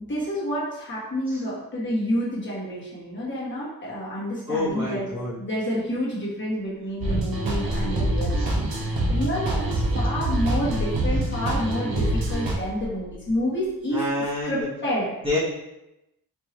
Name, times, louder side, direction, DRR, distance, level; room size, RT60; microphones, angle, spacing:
voice 1, 0.0-5.1 5.4-15.1, equal, 30° left, -8 dB, 1.5 m, -29 dB
voice 2, 4.5-5.4 8.4-8.5 13.9-14.7 15.2-15.4, left 2 dB, 15° right, -10 dB, 1.1 m, -27 dB
sound 1, 7.0-12.5, right 1 dB, 75° right, 0.9 m, -25 dB
sound 2, 7.6-10.0 10.6-13.7 14.1-14.6, left 3 dB, 80° left, 1.3 m, -35 dB
4.6 x 2.7 x 2.9 m, 0.91 s
wide cardioid pair, 125°, 36 cm